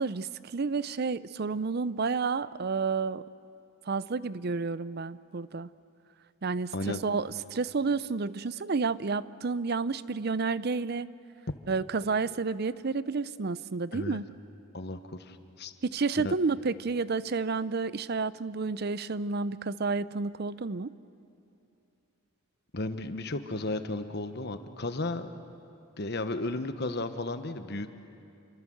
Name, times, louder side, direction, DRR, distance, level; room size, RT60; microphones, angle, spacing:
voice 1, 0.0-3.2 3.9-5.7 6.4-11.1 11.7-14.3 15.8-20.9, right 4 dB, 50° right, 17 dB, 0.6 m, -30 dB
voice 2, 14.7-15.7 16.2-16.3 22.7-25.3 26.0-27.9, left 2 dB, 50° left, 9 dB, 1.3 m, -34 dB
28.5 x 24.0 x 7.9 m, 2.7 s
head